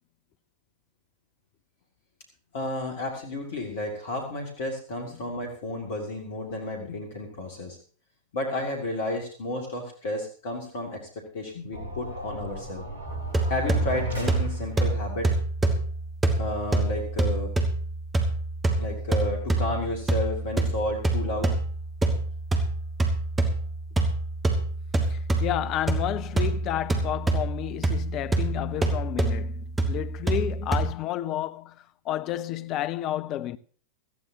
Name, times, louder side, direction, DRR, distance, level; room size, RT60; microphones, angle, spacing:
voice 1, 2.5-7.8 8.3-12.8 13.5-15.3 16.4-17.5 18.8-21.5, left 1 dB, 55° left, 2.4 m, -32 dB
sound 1, 11.7-15.1, right 1 dB, 65° right, 2.5 m, -34 dB
sound 2, 13.1-30.9, right 2 dB, 15° right, 1.8 m, -27 dB
voice 2, 25.1-33.6, left 13 dB, 35° left, 0.6 m, -31 dB
17.5 x 13.5 x 2.8 m
figure-of-eight pair, 90°, 0 cm